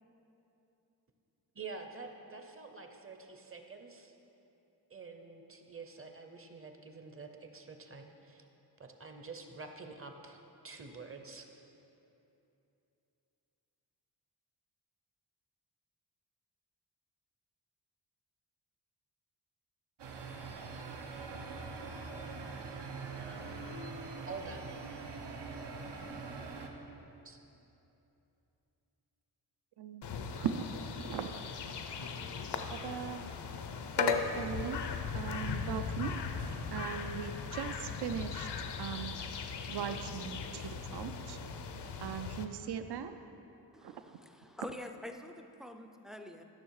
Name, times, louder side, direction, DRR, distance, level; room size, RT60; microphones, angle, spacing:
voice 1, 1.5-4.1 4.9-8.5 8.8-11.5 24.3-24.7 27.2-27.4, right 4 dB, 35° right, 5 dB, 0.7 m, -47 dB
sound 1, 20.0-26.7, right 4 dB, 90° right, 1.0 m, -43 dB
sound 2, 30.0-42.4, left 6 dB, 75° left, 0.7 m, -38 dB
voice 2, 30.3-31.7 32.7-33.3 34.0-36.2 36.7-38.5 38.8-39.2 39.7-41.4 42.0-43.2 43.8-44.0, right 7 dB, 70° right, 9 dB, 0.5 m, -39 dB
voice 3, 43.7-46.4, left 1 dB, ahead, 6 dB, 0.3 m, -46 dB
12.0 x 6.4 x 4.7 m, 2.9 s
wide cardioid pair, 145°, 41 cm